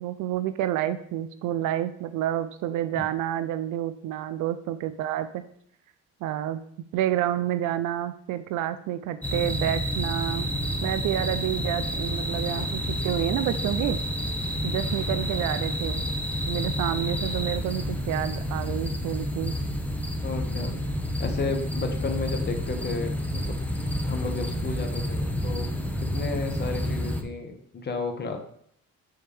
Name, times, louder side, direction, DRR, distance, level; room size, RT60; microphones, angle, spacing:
voice 1, 0.0-5.4 6.2-6.6 6.9-10.5 10.8-14.0 14.6-16.0 16.5-19.5, right 12 dB, 85° right, 12 dB, 0.5 m, -29 dB
sound 1, 9.2-27.2, equal, 5° left, 0.8 m, -29 dB
voice 2, 20.2-20.8 21.2-23.6 24.1-25.7 26.1-28.4, left 4 dB, 35° left, 4 dB, 1.2 m, -32 dB
9.2 x 3.2 x 3.5 m, 0.69 s
cardioid pair, 90°, 30 cm